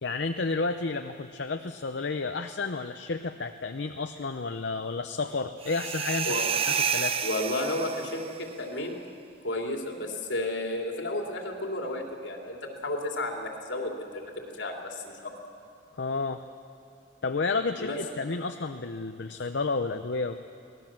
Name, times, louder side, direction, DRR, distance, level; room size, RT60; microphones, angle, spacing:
voice 1, 0.0-6.4 6.9-7.2 15.9-16.5 17.2-20.4, left 3 dB, 70° left, 7 dB, 0.7 m, -31 dB
sound 1, 5.6-8.3, right 7 dB, 30° right, 0.6 m, -29 dB
voice 2, 7.2-9.0 9.4-15.3 17.8-18.0, left 1 dB, 90° left, 1 dB, 3.0 m, -32 dB
24.5 x 18.5 x 7.4 m, 2.5 s
head